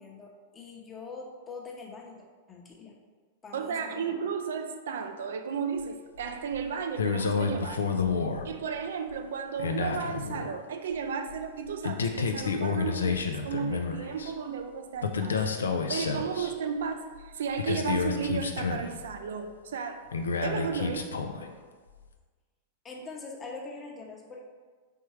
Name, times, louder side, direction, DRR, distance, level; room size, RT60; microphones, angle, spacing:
voice 1, 0.0-3.0 3.4-4.0 22.8-24.4, left 4 dB, 20° left, 0 dB, 0.8 m, -43 dB
voice 2, 3.5-15.4 15.9-20.0 20.4-21.1, right 6 dB, 75° right, 7 dB, 0.3 m, -34 dB
sound 1, 6.2-6.7 7.0-8.8 9.1-9.2 9.6-10.6 11.0-14.3 15.0-16.5 16.9-17.0 17.1-19.4 20.1-21.5 21.9-22.0, left 5 dB, 85° left, 0.4 m, -30 dB
4.4 x 3.5 x 3.1 m, 1.5 s
hypercardioid pair, 105°, 0 cm